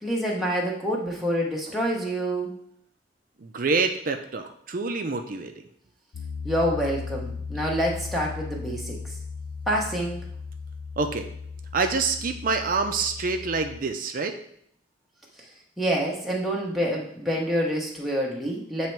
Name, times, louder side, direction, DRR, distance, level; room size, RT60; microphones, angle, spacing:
voice 1, 0.0-2.5 6.4-9.1 9.7-10.2 15.8-18.9, equal, ahead, -3 dB, 0.8 m, -27 dB
voice 2, 3.4-5.6 11.0-11.3 11.7-14.4, right 4 dB, 45° right, 6 dB, 0.5 m, -27 dB
Piano, 6.1-13.8, left 5 dB, 85° left, 0.6 m, -37 dB
7.4 x 3.1 x 4.5 m, 0.68 s
head